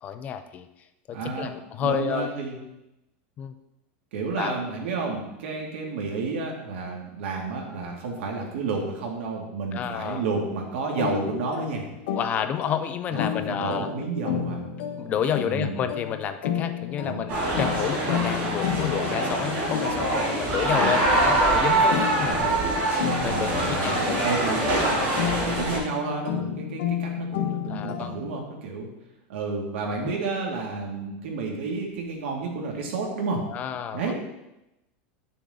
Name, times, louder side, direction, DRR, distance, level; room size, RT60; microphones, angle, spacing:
voice 1, 0.0-0.7 1.1-2.3 3.4-3.5 4.4-4.6 9.7-10.2 12.1-13.9 15.0-22.5 23.2-24.2 27.7-28.2 30.0-30.1 33.5-34.0, left 8 dB, 25° left, 9 dB, 0.4 m, -30 dB
voice 2, 1.1-1.5 1.8-2.6 4.1-11.8 13.1-14.7 15.4-15.8 17.0-17.2 20.8-21.0 22.2-22.5 23.2-25.1 25.4-28.9 29.3-33.4 33.9-34.1, right 4 dB, 80° right, 0 dB, 2.3 m, -31 dB
sound 1, 11.0-28.4, left 8 dB, 70° left, 1.4 m, -32 dB
sound 2, 17.3-25.8, right 2 dB, 35° right, 2.7 m, -24 dB
9.7 x 6.9 x 3.8 m, 0.93 s
supercardioid pair, 170°, 6 cm